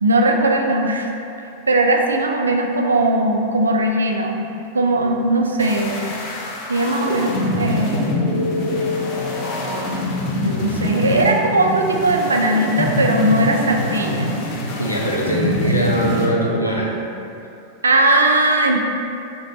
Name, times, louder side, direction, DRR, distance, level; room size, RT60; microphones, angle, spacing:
voice 1, 0.0-1.1 1.7-4.5 4.7-5.9 6.7-8.2 10.4-14.3 17.8-18.8, right 2 dB, 75° right, 2 dB, 0.3 m, -18 dB
sound 1, 5.6-16.3, left 1 dB, 35° left, 0.6 m, -24 dB
voice 2, 14.8-16.9, right 1 dB, 90° left, -3 dB, 0.5 m, -21 dB
3.5 x 3.3 x 2.8 m, 2.7 s
figure-of-eight pair, 90°, 0 cm